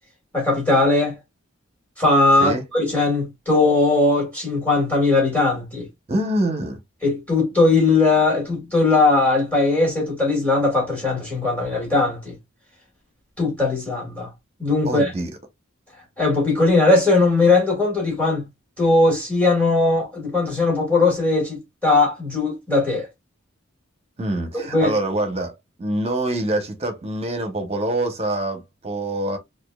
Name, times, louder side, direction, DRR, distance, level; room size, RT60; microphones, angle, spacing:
voice 1, 0.3-1.2 2.0-5.9 7.0-12.3 13.4-14.3 14.6-15.1 16.2-18.4 18.8-23.1 24.5-24.9, left 3 dB, 5° left, 2.0 m, -19 dB
voice 2, 6.1-6.8 14.8-15.3 24.2-29.4, right 1 dB, 30° right, 0.8 m, -25 dB
4.3 x 2.5 x 2.2 m
head